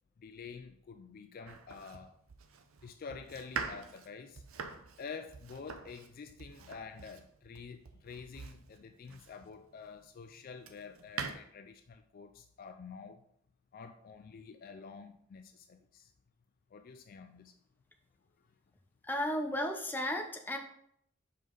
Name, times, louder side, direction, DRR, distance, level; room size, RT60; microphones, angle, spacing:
voice 1, 0.2-2.1 2.8-4.4 5.0-13.2 13.7-16.1 16.7-17.5, left 5 dB, 45° left, 7 dB, 0.3 m, -48 dB
Domestic sounds home sounds, 1.5-9.6 10.2-11.3, right 5 dB, 85° right, 0.6 m, -45 dB
voice 2, 19.1-20.6, left 1 dB, 10° left, 3 dB, 0.7 m, -34 dB
5.5 x 5.1 x 3.9 m, 0.69 s
head